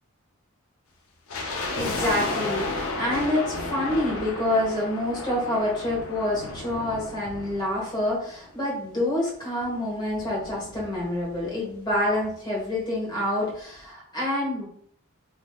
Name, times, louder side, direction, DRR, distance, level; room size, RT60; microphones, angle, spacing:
sound 1, 1.3-8.6 8.8-8.9 9.6-11.4 11.7-11.8 12.0-12.3 12.7-12.8, left 2 dB, 80° left, 0.6 m, -33 dB
voice 1, 1.7-14.6, left 1 dB, 20° left, -4 dB, 1.3 m, -27 dB
3.3 x 2.9 x 2.3 m, 0.63 s
head